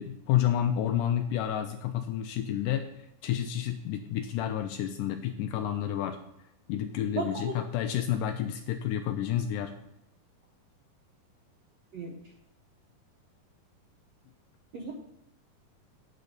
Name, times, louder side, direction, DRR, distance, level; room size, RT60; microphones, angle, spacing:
voice 1, 0.0-2.8 3.2-6.2 6.7-9.7, left 10 dB, 80° left, 6 dB, 2.0 m, -30 dB
voice 2, 7.2-7.5 11.9-12.1 14.7-14.9, right 4 dB, 70° right, -1 dB, 1.5 m, -34 dB
9.1 x 4.0 x 6.6 m, 0.82 s
omnidirectional pair, 4.2 m